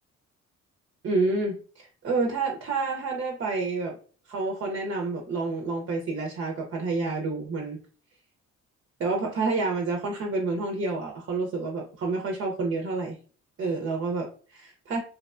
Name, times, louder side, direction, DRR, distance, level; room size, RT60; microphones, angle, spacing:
voice 1, 1.0-3.9 4.3-7.8 9.0-13.2 13.6-15.0, right 3 dB, 45° right, 1 dB, 0.6 m, -29 dB
2.8 x 2.1 x 2.4 m, 0.41 s
cardioid pair, 90°, 30 cm